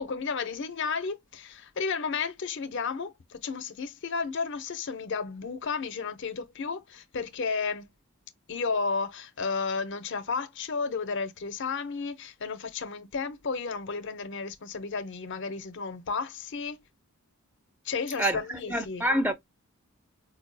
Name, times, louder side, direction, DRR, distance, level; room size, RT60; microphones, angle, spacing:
voice 1, 0.0-7.9 8.5-16.8 17.8-19.1, left 5 dB, 55° left, 0.5 m, -33 dB
voice 2, 18.2-19.3, equal, 10° right, 0.4 m, -27 dB
4.3 x 2.2 x 2.5 m
head